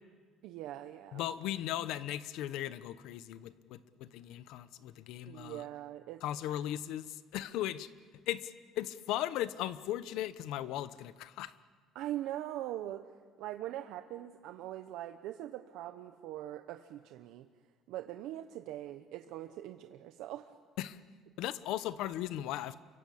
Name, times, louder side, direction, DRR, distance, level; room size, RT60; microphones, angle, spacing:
voice 1, 0.4-1.2 5.3-6.6 11.9-13.1 13.4-17.5 17.9-20.5, right 13 dB, 80° right, 7 dB, 1.0 m, -42 dB
voice 2, 1.1-5.6 6.2-7.9 8.3-11.5 20.8-21.0 21.4-22.7, left 13 dB, 75° left, 14 dB, 1.0 m, -37 dB
28.5 x 24.0 x 8.5 m, 1.5 s
cardioid pair, 175°, 0 cm